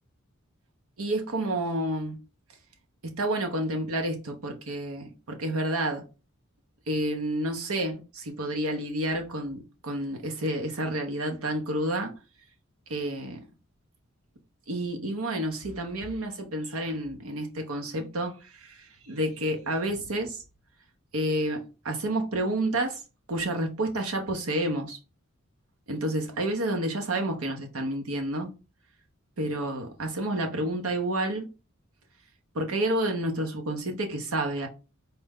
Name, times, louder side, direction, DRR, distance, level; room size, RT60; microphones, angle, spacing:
voice 1, 1.0-2.2 3.0-6.1 6.9-12.1 12.9-13.4 14.7-20.4 21.1-23.0 23.3-25.0 25.9-28.5 29.4-31.5 32.5-34.7, right 1 dB, 85° right, 0.9 m, -30 dB
4.3 x 2.1 x 3.5 m
head